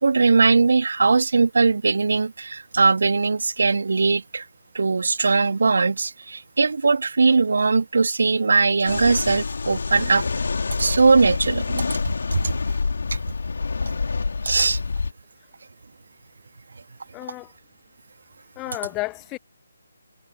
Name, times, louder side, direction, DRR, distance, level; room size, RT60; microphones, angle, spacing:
voice 1, 0.0-4.5 4.7-10.2 10.8-11.9 12.3-12.5 13.9-14.0 14.4-14.8, right 4 dB, 60° right, 1.9 m, -20 dB
sound 1, 8.8-15.1, left 4 dB, 60° left, 2.9 m, -27 dB
voice 2, 17.1-17.5 18.6-19.4, left 22 dB, 15° left, 0.9 m, -31 dB
figure-of-eight pair, 145°, 0 cm